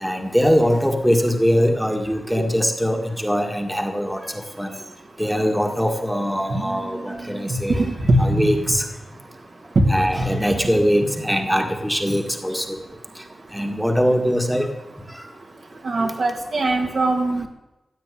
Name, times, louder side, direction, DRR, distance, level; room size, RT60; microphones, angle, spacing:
voice 1, 0.0-4.7 5.2-7.9 8.2-8.8 9.9-12.8 13.5-14.7, equal, ahead, 4 dB, 1.8 m, -22 dB
voice 2, 6.5-6.8 7.5-7.6 8.1-8.7 9.8-9.9 15.8-17.5, right 1 dB, 60° right, 2 dB, 2.7 m, -20 dB
15.5 x 8.4 x 9.9 m, 0.97 s
wide cardioid pair, 95°, 0 cm